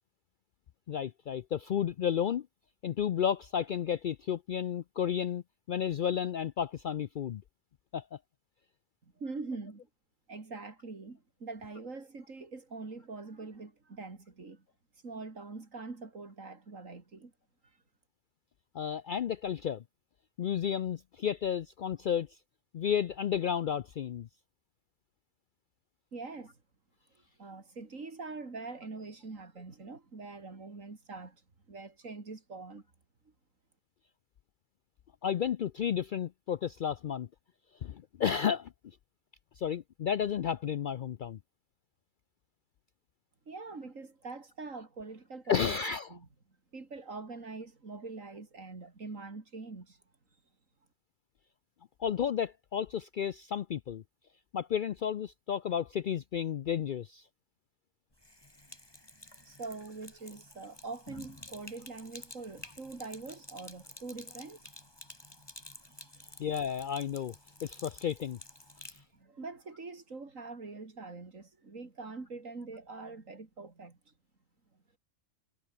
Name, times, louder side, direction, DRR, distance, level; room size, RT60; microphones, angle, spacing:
voice 1, 0.9-2.5 2.8-7.4 7.9-8.0 18.7-19.8 20.4-22.3 22.7-24.3 35.2-37.3 37.8-38.7 39.6-41.4 45.5-46.1 52.0-54.0 54.5-57.2 66.4-67.3 67.6-68.4, left 8 dB, 65° left, 0.5 m, -32 dB
voice 2, 9.0-9.9 10.3-14.6 15.0-17.3 26.1-26.5 27.4-31.4 31.7-32.8 43.5-45.8 46.1-46.3 46.7-50.0 59.4-64.6 66.0-66.5 69.1-74.1, right 3 dB, 80° right, 3.5 m, -44 dB
Sink (filling or washing), 58.1-69.0, left 1 dB, 20° left, 3.8 m, -51 dB
omnidirectional pair, 1.3 m